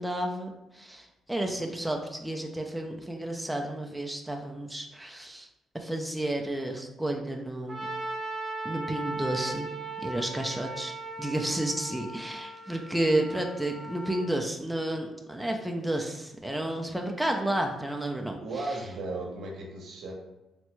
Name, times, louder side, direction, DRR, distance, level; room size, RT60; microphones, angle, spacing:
voice 1, 0.0-5.5 5.7-7.9 8.6-9.7 10.0-18.4 18.7-18.8, right 1 dB, 5° right, 2 dB, 0.3 m, -31 dB
Trumpet, 7.7-14.3, right 2 dB, 25° right, 0.7 m, -38 dB
voice 2, 18.4-20.1, right 2 dB, 70° right, 0 dB, 0.7 m, -36 dB
3.4 x 2.1 x 3.0 m, 0.99 s
cardioid pair, 90°, 0 cm